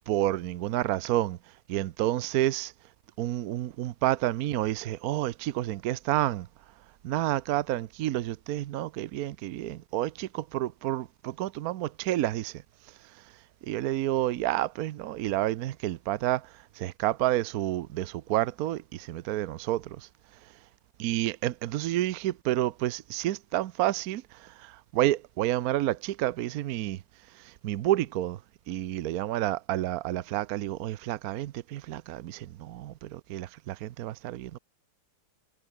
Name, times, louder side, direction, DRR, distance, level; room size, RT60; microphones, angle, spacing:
voice 1, 0.1-1.4 1.7-2.7 3.2-6.5 7.0-12.6 13.7-16.5 16.8-20.0 21.0-27.0 27.6-28.4 28.7-34.6, right 14 dB, 70° right, 0.8 m, -29 dB
omnidirectional pair, 2.3 m